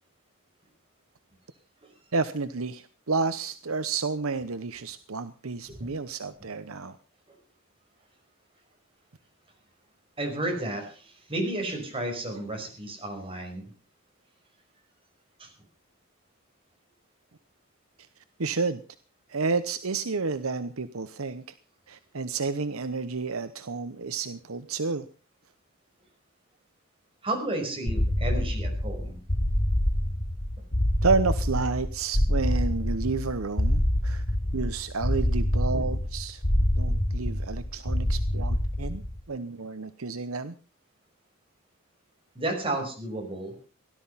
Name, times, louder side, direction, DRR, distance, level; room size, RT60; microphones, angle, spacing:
voice 1, 2.1-7.0 18.4-18.8 19.3-21.4 21.9-25.1 31.0-34.2 34.5-36.4 36.8-39.0 39.3-40.5, right 4 dB, 70° right, 12 dB, 0.9 m, -30 dB
voice 2, 10.2-13.7 15.4-15.5 27.2-29.2 34.5-34.6 38.8-38.9 42.4-43.6, right 1 dB, 25° right, 2 dB, 5.5 m, -32 dB
sound 1, 27.9-39.2, left 1 dB, 45° left, 2.3 m, -26 dB
17.5 x 12.5 x 5.7 m, 0.38 s
head